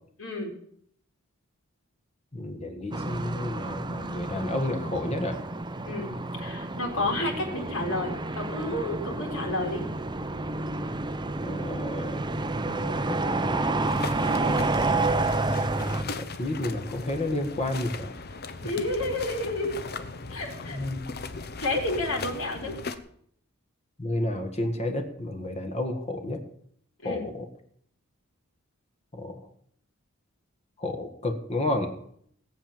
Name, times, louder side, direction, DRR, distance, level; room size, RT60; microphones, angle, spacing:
voice 1, 0.2-0.5 5.9-6.1 6.4-9.8 14.3-14.7 18.6-19.8 20.3-20.8 21.6-22.8 27.0-27.3, left 2 dB, 70° left, 1 dB, 3.7 m, -30 dB
voice 2, 2.3-5.4 11.4-12.2 12.6-13.8 16.0-18.4 20.7-21.0 24.0-26.4 27.0-27.5 29.1-29.4 30.8-31.9, left 1 dB, 30° left, 5 dB, 1.5 m, -31 dB
sound 1, 2.9-16.0, right 2 dB, 20° right, 0.7 m, -29 dB
sound 2, 13.8-23.0, left 4 dB, 50° left, 0.9 m, -38 dB
18.0 x 7.6 x 7.2 m, 0.67 s
head